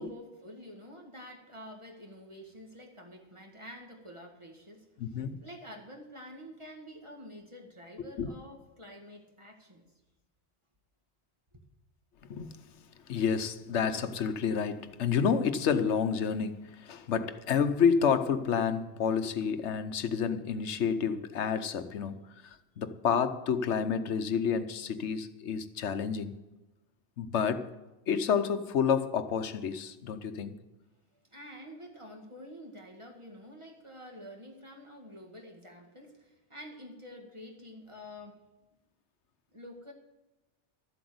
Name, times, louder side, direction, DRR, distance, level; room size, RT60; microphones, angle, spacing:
voice 1, 0.0-9.9 31.2-38.4 39.5-39.9, equal, 25° right, 2.0 m, -48 dB
voice 2, 5.0-5.4 8.2-8.3 12.3-12.6 13.1-26.4 27.2-27.7 28.1-30.5, left 6 dB, 85° left, 1.2 m, -29 dB
12.5 x 7.9 x 7.9 m
omnidirectional pair, 1.1 m